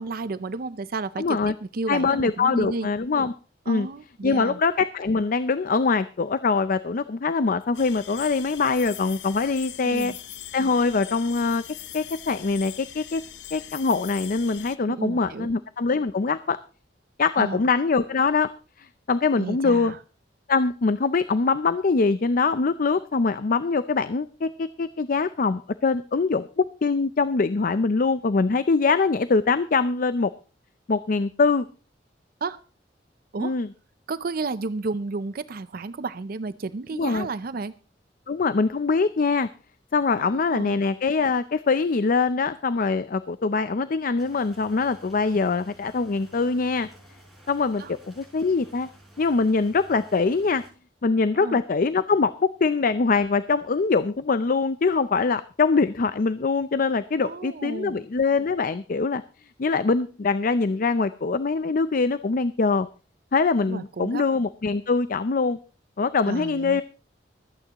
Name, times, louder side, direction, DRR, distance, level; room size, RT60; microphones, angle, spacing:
voice 1, 0.0-2.9 3.7-4.6 9.8-10.2 14.9-15.5 17.4-17.6 19.4-20.0 32.4-32.6 33.3-33.6 34.1-37.7 40.2-40.7 47.8-47.9 51.3-51.6 57.2-58.1 63.7-64.2 66.2-66.8, right 3 dB, 55° right, 0.5 m, -32 dB
voice 2, 1.2-1.5 1.9-3.3 3.7-3.9 4.2-10.1 10.5-11.6 11.9-13.2 13.5-16.6 17.2-18.5 18.8-19.9 20.5-30.3 30.9-31.7 33.4-33.7 36.9-37.3 38.3-39.5 39.9-46.9 47.5-48.9 49.2-50.6 51.0-59.2 59.6-62.9 63.3-65.6 66.0-66.8, left 4 dB, 50° left, 0.5 m, -23 dB
sound 1, 7.7-14.8, left 11 dB, 90° left, 0.8 m, -41 dB
sound 2, 44.2-50.7, right 1 dB, ahead, 5.2 m, -52 dB
25.0 x 9.1 x 2.9 m
head